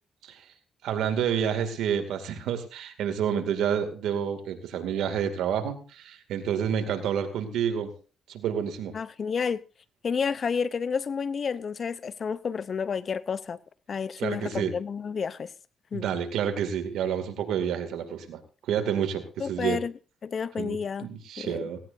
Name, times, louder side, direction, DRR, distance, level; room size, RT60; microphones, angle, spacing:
voice 1, 0.8-7.9 8.3-8.9 14.2-14.7 15.9-19.8 20.6-21.8, right 8 dB, 80° right, 2.3 m, -29 dB
voice 2, 8.9-9.6 10.0-13.6 13.9-15.5 15.9-16.1 19.4-19.9 20.2-21.1 21.4-21.6, left 6 dB, 45° left, 0.7 m, -30 dB
17.5 x 17.0 x 2.7 m
cardioid pair, 90°, 0 cm